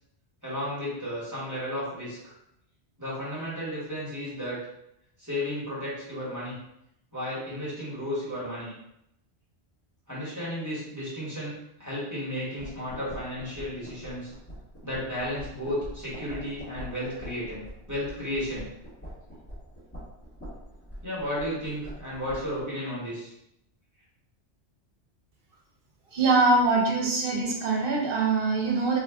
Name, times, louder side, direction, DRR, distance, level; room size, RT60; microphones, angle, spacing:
voice 1, 0.4-2.3 3.0-4.6 5.2-6.5 7.1-8.7 10.1-11.5 11.8-14.3 14.8-18.7 21.0-23.3, left 1 dB, 15° right, -9 dB, 1.2 m, -33 dB
sound 1, 12.6-22.7, equal, 15° left, 1.3 m, -44 dB
voice 2, 26.1-29.0, right 3 dB, 60° right, -1 dB, 0.8 m, -23 dB
2.8 x 2.5 x 3.4 m, 0.79 s
omnidirectional pair, 1.1 m